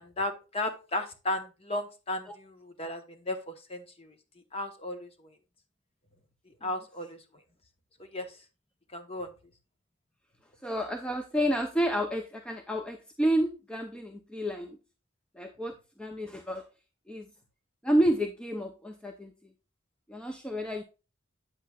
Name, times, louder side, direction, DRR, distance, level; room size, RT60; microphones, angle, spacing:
voice 1, 0.0-4.2 4.5-5.4 6.6-7.2 8.0-8.4 8.9-9.3, left 2 dB, 30° left, 7 dB, 1.0 m, -35 dB
voice 2, 10.6-14.8 15.3-16.7 17.1-17.3 17.8-19.3 20.1-20.8, equal, 5° left, 4 dB, 0.5 m, -30 dB
8.3 x 7.7 x 2.3 m, 0.31 s
head